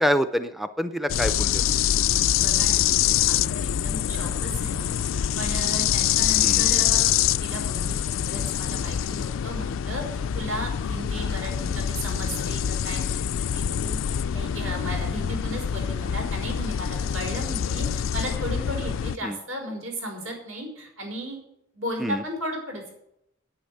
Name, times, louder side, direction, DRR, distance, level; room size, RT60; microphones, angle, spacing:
voice 1, 0.0-1.8 6.4-6.7 11.6-11.8 14.6-14.8 19.2-19.4 22.0-22.2, equal, ahead, 10 dB, 0.4 m, -27 dB
Three bugs, 1.1-19.2, left 10 dB, 70° left, 0.4 m, -25 dB
voice 2, 2.4-7.2 7.4-8.0 8.2-13.3 13.5-21.4 21.7-22.9, equal, 80° right, 1 dB, 5.2 m, -35 dB
10.5 x 9.0 x 7.8 m, 0.78 s
head